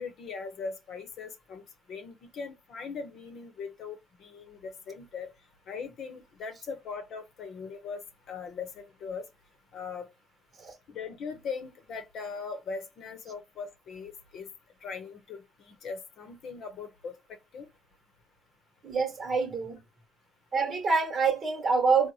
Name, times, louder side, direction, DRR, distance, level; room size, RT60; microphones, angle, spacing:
voice 1, 0.0-1.6 1.9-5.3 5.7-8.0 8.3-9.3 9.7-10.1 10.9-14.5 14.8-17.1 17.5-17.7, left 5 dB, 60° left, 0.8 m, -40 dB
voice 2, 18.8-19.8 20.5-22.1, right 4 dB, 40° right, 1.1 m, -26 dB
3.9 x 2.1 x 3.1 m
cardioid pair, 100°, 0 cm